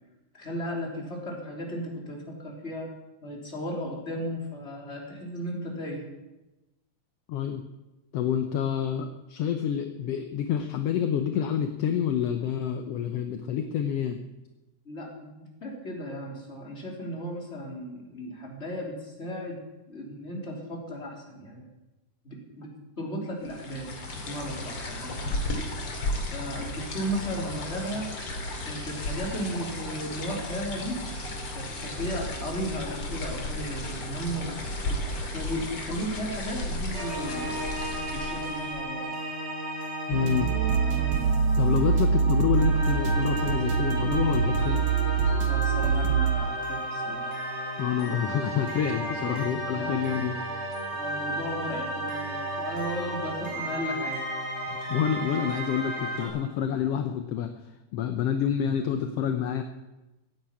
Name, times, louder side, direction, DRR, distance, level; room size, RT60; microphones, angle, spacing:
voice 1, 0.3-2.9 3.2-6.0 14.9-19.6 19.9-21.7 22.2-22.7 23.0-25.2 26.3-28.1 28.6-31.0 31.5-37.5 38.1-39.3 45.4-47.3 49.0-49.4 49.7-50.2 51.0-54.2, equal, 20° left, -1 dB, 3.6 m, -35 dB
voice 2, 7.3-7.6 8.1-14.2 40.1-40.5 41.6-44.9 47.8-50.4 54.7-57.5 57.9-59.6, left 9 dB, 70° left, 7 dB, 1.6 m, -28 dB
sound 1, 23.5-38.9, left 1 dB, 45° left, 3.1 m, -34 dB
sound 2, 36.9-56.3, right 1 dB, 20° right, 4.7 m, -34 dB
sound 3, 40.1-46.3, right 5 dB, 60° right, 2.2 m, -24 dB
16.5 x 9.4 x 8.5 m, 1.0 s
omnidirectional pair, 3.5 m